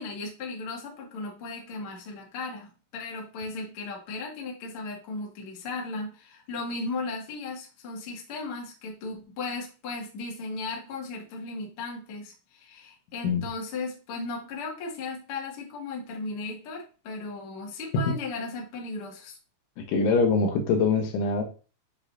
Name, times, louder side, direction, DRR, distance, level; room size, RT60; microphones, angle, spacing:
voice 1, 0.0-19.4, left 3 dB, 45° left, -2 dB, 1.8 m, -36 dB
voice 2, 19.9-21.4, left 4 dB, 75° left, 3 dB, 3.4 m, -23 dB
10.5 x 4.1 x 2.7 m, 0.34 s
omnidirectional pair, 5.8 m